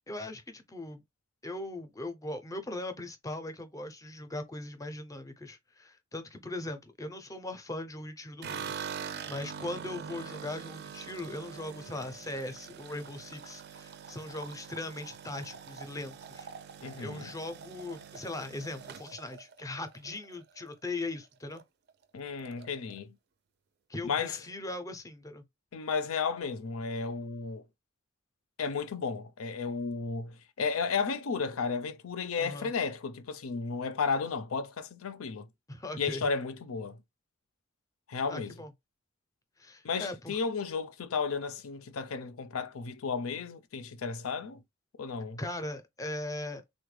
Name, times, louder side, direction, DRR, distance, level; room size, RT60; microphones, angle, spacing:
voice 1, 0.1-1.0 1.4-8.8 9.3-16.5 17.0-21.6 23.9-25.4 32.4-32.7 35.7-36.3 38.3-38.7 39.6-40.4 45.4-46.6, left 2 dB, 15° left, 0.5 m, -39 dB
sound 1, 8.4-20.7 21.0-21.6 21.9-22.0 22.3-23.0, right 7 dB, 50° right, 0.4 m, -44 dB
voice 2, 16.8-17.3 22.1-23.2 24.0-24.4 25.7-27.6 28.6-35.5 36.0-37.0 38.1-38.5 39.8-44.6 45.0-45.4, left 5 dB, 80° left, 0.5 m, -33 dB
3.5 x 2.1 x 3.2 m
head